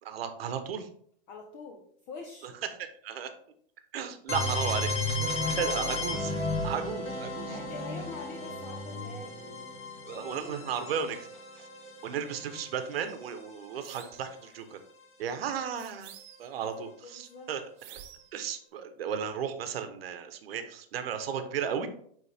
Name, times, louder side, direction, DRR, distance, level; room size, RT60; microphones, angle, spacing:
voice 1, 0.0-0.9 2.8-3.3 3.9-5.1 5.5-6.3 6.6-7.6 10.1-11.3 12.0-14.8 15.2-16.1 16.4-17.6 18.3-21.9, right 7 dB, 75° right, 8 dB, 1.0 m, -34 dB
voice 2, 1.3-2.6 5.5-6.0 7.4-9.4 10.1-10.8 11.8-11.9 16.4-17.5, left 4 dB, 35° left, 3 dB, 0.8 m, -45 dB
sound 1, 4.3-14.0, left 2 dB, 20° left, 1.3 m, -34 dB
sound 2, 13.8-14.3 15.8-16.6 17.8-18.4, right 10 dB, 35° right, 0.8 m, -50 dB
8.4 x 3.6 x 3.4 m, 0.62 s
hypercardioid pair, 130°, 30 cm